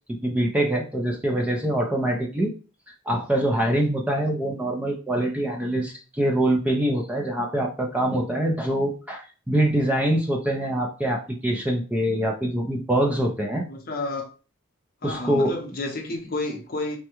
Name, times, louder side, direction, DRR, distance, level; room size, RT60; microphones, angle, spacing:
voice 1, 0.2-2.5 3.1-13.6 15.0-15.5, right 1 dB, 5° right, 0.4 m, -24 dB
voice 2, 13.7-14.3 15.0-17.0, left 2 dB, 50° left, 0.7 m, -30 dB
3.4 x 2.1 x 2.9 m
head